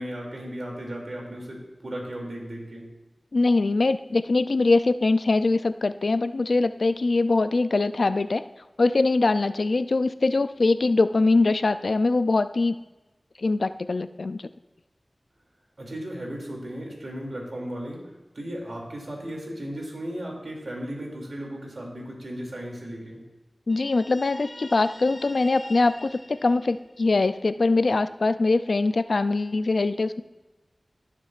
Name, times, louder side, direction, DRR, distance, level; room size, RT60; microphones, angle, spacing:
voice 1, 0.0-2.8 15.8-18.1 18.3-23.2, equal, 75° right, -1 dB, 2.6 m, -35 dB
voice 2, 3.3-8.4 8.8-12.7 13.4-14.4 23.7-30.2, left 3 dB, 80° left, 12 dB, 0.3 m, -22 dB
Guitar, 23.7-27.3, left 1 dB, 55° left, 2.0 m, -45 dB
16.5 x 7.3 x 2.5 m, 1.1 s
wide cardioid pair, 55°, 0 cm